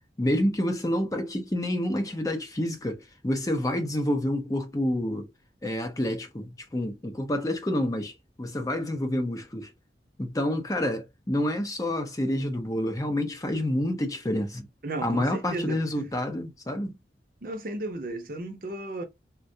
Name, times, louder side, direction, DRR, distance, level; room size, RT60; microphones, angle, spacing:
voice 1, 0.2-5.3 5.6-9.7 10.2-14.7 15.0-17.0, left 1 dB, 20° left, 0.5 m, -28 dB
voice 2, 14.8-16.1 17.4-19.0, right 2 dB, 50° right, 0.7 m, -34 dB
3.5 x 2.2 x 2.6 m
head